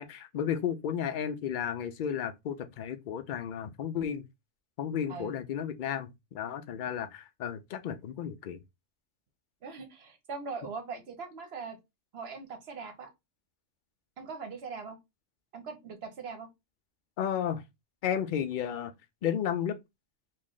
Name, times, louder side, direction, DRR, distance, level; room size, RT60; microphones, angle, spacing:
voice 1, 0.0-4.2 4.8-8.6 17.2-17.6 18.0-18.9 19.2-19.8, left 8 dB, 60° left, 0.5 m, -33 dB
voice 2, 5.1-5.4 9.6-11.8 12.1-13.1 14.2-15.0 15.5-16.5, right 5 dB, 60° right, 1.0 m, -41 dB
3.1 x 2.5 x 3.6 m
omnidirectional pair, 1.3 m